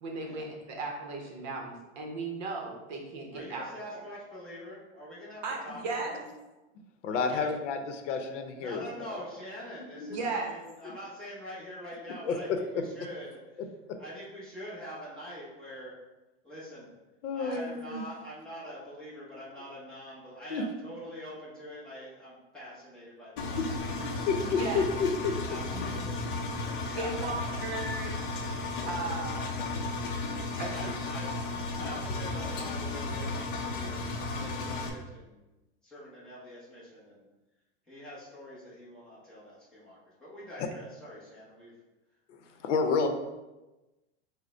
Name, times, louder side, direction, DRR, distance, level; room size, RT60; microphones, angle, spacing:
voice 1, 0.0-3.7 3.9-4.0 5.4-6.2 10.1-10.5 24.4-24.9 25.7-25.9 26.9-28.2 28.9-29.5 30.6-30.7, right 3 dB, 40° right, 1 dB, 0.7 m, -36 dB
voice 2, 3.3-6.2 7.1-7.5 8.6-13.3 13.5-13.7 14.0-15.9 16.4-16.9 17.3-24.9 25.4-27.6 28.8-29.9 30.6-31.3 31.8-35.4 35.8-37.3 37.9-41.7, equal, ahead, -9 dB, 0.6 m, -45 dB
voice 3, 7.0-7.8 8.0-8.8 10.0-10.2 12.3-12.4 17.2-18.0 20.5-20.6 24.3-25.3 42.3-42.4 42.6-43.1, left 5 dB, 85° left, 6 dB, 0.7 m, -29 dB
Engine, 23.4-34.9, left 3 dB, 45° left, 0.6 m, -34 dB
5.0 x 2.1 x 4.3 m, 1.1 s
supercardioid pair, 180°, 36 cm